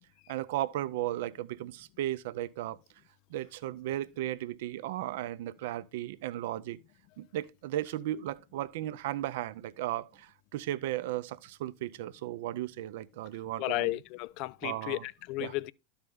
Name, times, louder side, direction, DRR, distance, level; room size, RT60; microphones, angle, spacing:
voice 1, 0.3-2.8 3.3-6.8 7.2-13.9 14.6-15.0 15.4-15.5, right 14 dB, 70° right, 0.5 m, -35 dB
voice 2, 13.6-15.7, left 19 dB, 55° left, 0.3 m, -33 dB
12.0 x 4.4 x 3.5 m
hypercardioid pair, 90°, 0 cm